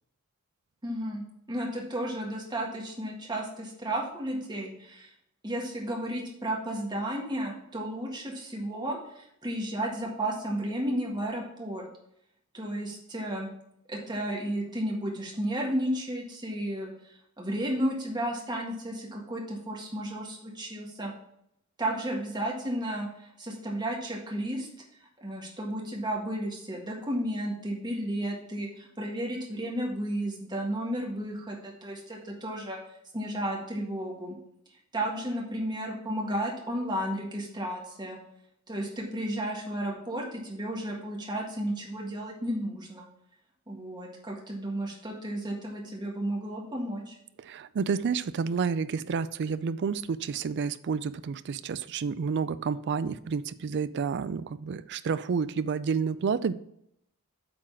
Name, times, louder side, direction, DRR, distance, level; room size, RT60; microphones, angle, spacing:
voice 1, 0.8-5.1 5.4-11.9 12.5-13.5 13.9-21.1 21.8-32.8 33.1-34.4 34.9-38.2 38.7-43.1 43.7-47.2, right 1 dB, 20° right, -1 dB, 1.7 m, -33 dB
voice 2, 47.5-56.5, right 5 dB, 50° right, 15 dB, 0.4 m, -30 dB
8.6 x 3.9 x 6.2 m, 0.74 s
head